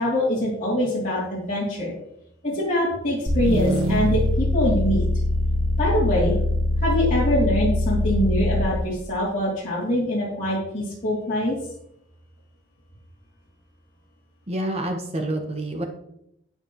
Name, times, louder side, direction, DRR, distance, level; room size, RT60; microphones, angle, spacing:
voice 1, 0.0-1.9 2.4-5.0 5.8-6.4 6.8-11.5, left 1 dB, 40° left, -8 dB, 3.0 m, -24 dB
sound 1, 3.3-8.9, left 1 dB, 80° right, 1.6 m, -23 dB
voice 2, 14.5-15.8, right 1 dB, 30° right, 3 dB, 1.1 m, -27 dB
9.5 x 9.3 x 3.1 m, 0.76 s
head